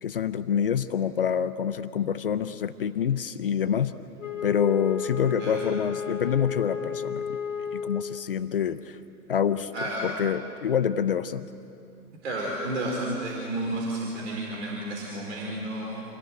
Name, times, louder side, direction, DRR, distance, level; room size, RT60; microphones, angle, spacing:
voice 1, 0.0-3.9 4.4-7.4 7.7-9.0 9.3-9.7 10.0-11.5, left 8 dB, 35° left, 13 dB, 0.7 m, -26 dB
Wind instrument woodwind instrument, 4.2-8.4, left 6 dB, 55° left, 1.5 m, -33 dB
voice 2, 12.2-16.0, right 1 dB, 45° right, -1 dB, 4.6 m, -31 dB
27.5 x 21.0 x 9.2 m, 2.6 s
figure-of-eight pair, 125°, 46 cm